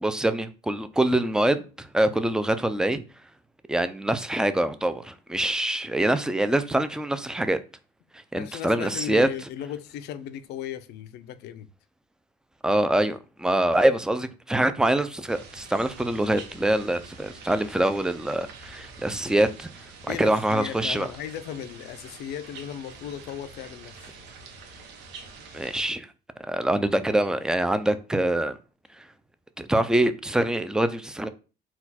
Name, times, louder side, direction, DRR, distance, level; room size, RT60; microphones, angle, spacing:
voice 1, 0.0-3.0 3.7-7.6 8.3-9.3 12.6-19.7 20.1-21.1 25.5-26.1 26.4-28.6 29.0-29.1 29.6-31.3, right 1 dB, 5° right, 0.3 m, -24 dB
voice 2, 8.3-11.7 20.1-24.2, left 10 dB, 80° left, 0.5 m, -36 dB
sound 1, 15.3-25.8, right 4 dB, 90° right, 0.8 m, -46 dB
4.2 x 2.3 x 4.1 m
cardioid pair, 110°, 17 cm